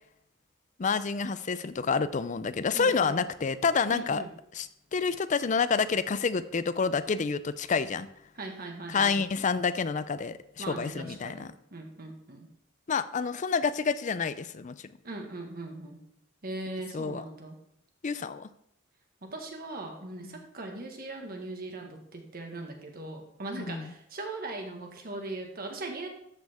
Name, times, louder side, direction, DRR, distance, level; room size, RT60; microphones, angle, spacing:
voice 1, 0.8-4.2 4.5-8.1 8.9-11.5 12.9-14.9 16.9-17.2 18.0-18.5 20.2-20.4 23.6-23.9, left 5 dB, 40° left, 14 dB, 0.4 m, -28 dB
voice 2, 2.7-3.1 3.9-4.3 8.4-9.2 10.6-12.5 15.0-16.0 16.4-17.6 19.2-26.1, right 2 dB, 50° right, 3 dB, 1.6 m, -39 dB
13.0 x 6.3 x 3.6 m, 0.73 s
head